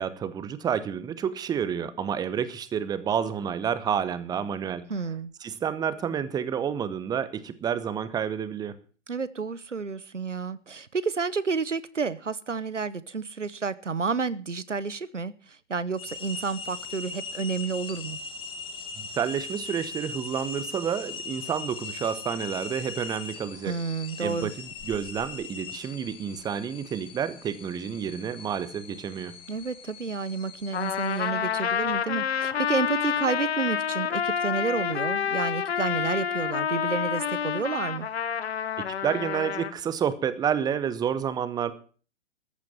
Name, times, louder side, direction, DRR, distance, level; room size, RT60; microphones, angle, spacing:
voice 1, 0.0-4.9 5.4-8.8 19.0-23.8 24.2-29.4 39.0-41.7, right 8 dB, 10° right, 0.9 m, -29 dB
voice 2, 4.9-5.3 9.1-15.3 15.7-18.2 23.6-24.5 29.5-38.1, right 5 dB, 85° right, 1.1 m, -30 dB
sound 1, 16.0-31.3, left 4 dB, 15° left, 1.5 m, -40 dB
Trumpet, 30.7-39.7, left 8 dB, 60° left, 1.2 m, -28 dB
14.0 x 8.7 x 7.7 m
figure-of-eight pair, 120°, 35 cm